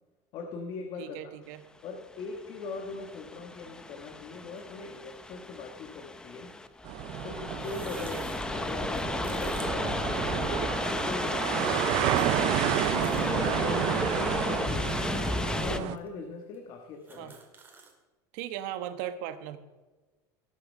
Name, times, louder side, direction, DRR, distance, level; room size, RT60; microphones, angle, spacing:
voice 1, 0.3-1.3 1.8-6.5 7.2-10.4 10.9-15.1 15.6-17.3, left 4 dB, 50° left, 4 dB, 1.4 m, -41 dB
voice 2, 1.0-1.6 8.0-8.3 11.6-11.9 17.2-17.3 18.3-19.6, right 11 dB, 75° right, 10 dB, 1.3 m, -38 dB
sound 1, 2.2-15.8, left 2 dB, 10° left, 0.6 m, -33 dB
sound 2, 4.5-4.6 5.9-6.0 7.4-10.8 11.2-11.3 12.2-12.3 12.7-13.3 13.8-13.9 14.7-14.8 15.6-15.7 16.0-16.1 16.5-16.6 16.9-17.9, right 4 dB, 20° right, 2.0 m, -50 dB
sound 3, 6.8-16.0, right 15 dB, 55° right, 0.5 m, -31 dB
18.0 x 6.8 x 5.4 m, 1.2 s
cardioid pair, 155°, 10 cm